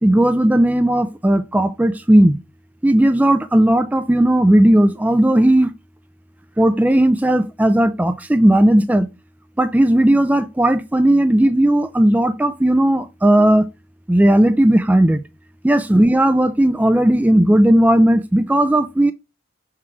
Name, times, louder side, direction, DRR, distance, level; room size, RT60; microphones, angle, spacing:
voice 1, 0.0-2.4 2.8-5.7 6.6-9.1 9.6-13.7 14.1-15.2 15.6-19.1, right 1 dB, 10° right, 0.3 m, -15 dB
6.1 x 3.6 x 4.3 m
head